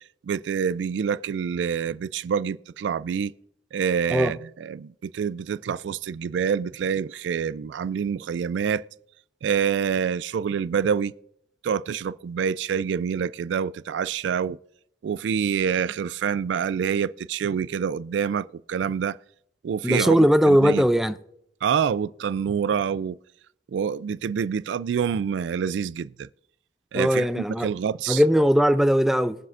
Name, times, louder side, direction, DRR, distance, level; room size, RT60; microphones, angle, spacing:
voice 1, 0.2-3.3 3.7-8.8 9.4-11.1 11.6-14.6 15.0-19.2 19.6-20.8 21.6-23.2 23.7-26.3 26.9-28.2, right 7 dB, 75° right, 0.3 m, -26 dB
voice 2, 19.8-21.2 26.9-27.7 28.1-29.4, equal, ahead, 0.4 m, -19 dB
22.5 x 7.5 x 2.5 m
head